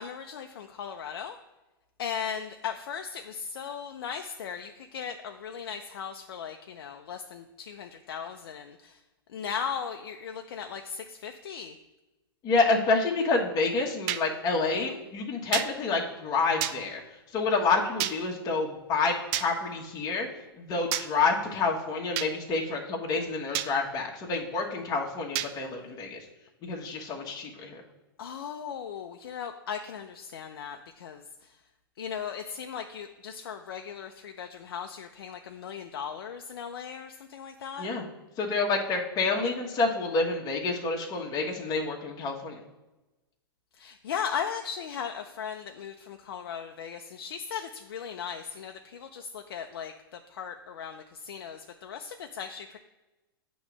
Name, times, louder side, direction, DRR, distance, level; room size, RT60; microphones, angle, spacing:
voice 1, 0.0-1.4 2.0-9.0 9.3-11.7 28.2-31.2 32.0-37.9 43.8-52.8, left 7 dB, 70° left, 5 dB, 0.5 m, -37 dB
voice 2, 12.4-17.0 17.3-20.3 20.6-26.2 26.6-27.8 37.8-38.0 38.4-42.6, left 3 dB, 30° left, -1 dB, 1.2 m, -28 dB
sound 1, 14.1-14.2 15.5-15.7 16.6-16.8 18.0-18.2 19.3-19.5 20.9-21.1 22.2-22.3 23.5-23.7 25.4-25.5, right 12 dB, 45° right, 0.4 m, -29 dB
8.7 x 3.1 x 6.0 m, 1.1 s
hypercardioid pair, 115°, 12 cm